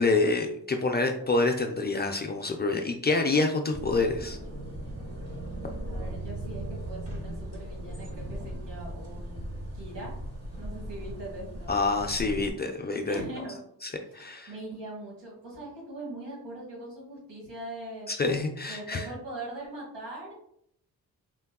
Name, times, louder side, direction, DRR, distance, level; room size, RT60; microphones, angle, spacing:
voice 1, 0.0-4.4 11.7-13.2 13.8-14.5 18.1-19.1, left 3 dB, 25° left, 3 dB, 0.3 m, -27 dB
sound 1, 3.7-12.5, right 1 dB, 35° right, 1.0 m, -38 dB
voice 2, 5.9-10.1 10.6-11.8 13.1-13.6 14.1-18.1 18.7-20.3, right 1 dB, 80° right, -3 dB, 1.5 m, -41 dB
3.6 x 2.2 x 2.3 m, 0.71 s
supercardioid pair, 55°, 41 cm